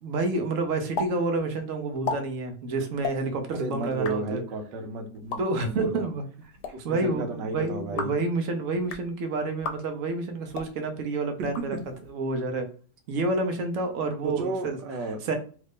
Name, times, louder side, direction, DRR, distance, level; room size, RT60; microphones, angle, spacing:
voice 1, 0.0-4.4 5.4-6.2 6.8-11.8 12.1-12.7 13.1-14.8 15.2-15.4, right 3 dB, 65° right, 5 dB, 0.8 m, -29 dB
sound 1, 1.0-1.1 1.4-1.5 1.9-2.2 3.0-3.2 3.9-4.2 5.1-5.4 6.4-6.7 7.8-8.2 8.7-9.1 9.6-9.8 10.5-10.7 11.4-12.1, left 4 dB, 75° left, 1.1 m, -34 dB
voice 2, 3.5-6.0 6.7-8.1 11.4-11.8 14.2-15.2, right 3 dB, 80° right, 4 dB, 1.3 m, -32 dB
3.1 x 2.5 x 3.5 m, 0.41 s
omnidirectional pair, 2.0 m